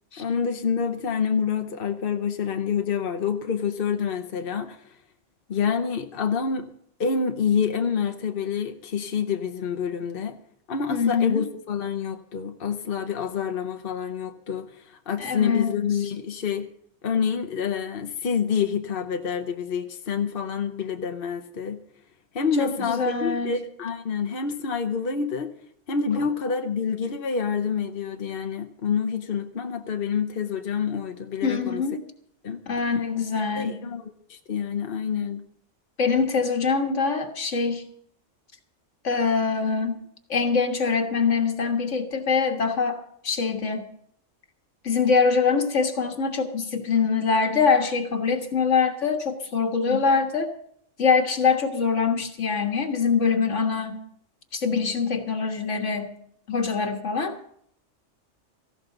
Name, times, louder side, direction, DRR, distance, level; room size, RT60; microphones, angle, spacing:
voice 1, 0.2-4.8 5.5-6.7 7.0-10.4 10.7-16.7 17.0-21.8 22.3-25.5 25.9-31.8 32.4-32.6 33.6-35.4 49.9-50.0, left 6 dB, 50° left, 6 dB, 1.1 m, -27 dB
voice 2, 10.9-11.4 15.2-15.7 22.6-23.6 31.4-32.0 32.7-33.8 36.0-37.8 39.0-40.0 40.3-43.9 44.8-50.5 51.0-54.0 54.5-56.1 56.5-57.4, left 5 dB, 75° left, 4 dB, 1.9 m, -24 dB
17.5 x 15.0 x 4.0 m, 0.67 s
omnidirectional pair, 1.3 m